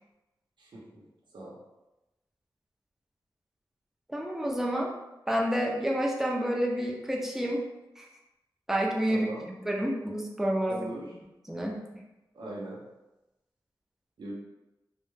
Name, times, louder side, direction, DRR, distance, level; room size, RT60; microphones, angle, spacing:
voice 1, 0.6-1.0 1.3-1.6 9.1-9.6 10.7-11.1 12.3-12.8 14.2-14.3, right 1 dB, 75° right, -4 dB, 0.7 m, -40 dB
voice 2, 4.1-4.9 5.3-7.7 8.0-8.1 8.7-9.3 9.7-10.8 11.5-11.8, equal, 5° right, -2 dB, 0.4 m, -29 dB
2.2 x 2.1 x 3.1 m, 1.0 s
wide cardioid pair, 105°, 8 cm